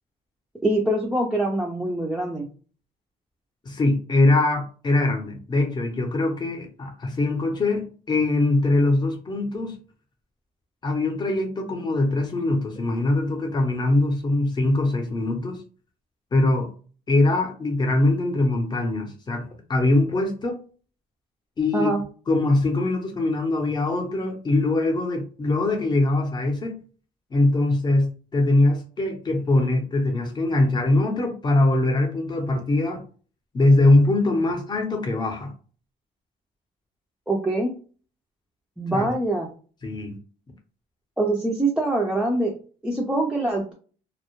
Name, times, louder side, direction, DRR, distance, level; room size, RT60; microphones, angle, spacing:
voice 1, 0.6-2.5 21.7-22.0 37.3-37.7 38.8-39.5 41.2-42.5 42.8-43.7, right 2 dB, 5° right, 0.4 m, -24 dB
voice 2, 3.6-9.8 10.8-15.6 16.3-16.7 17.1-20.6 21.6-21.9 22.3-26.8 27.3-33.0 33.5-35.5 38.9-39.1 39.8-40.2, left 2 dB, 25° left, 0.7 m, -22 dB
2.1 x 2.0 x 2.9 m
cardioid pair, 110°, 17 cm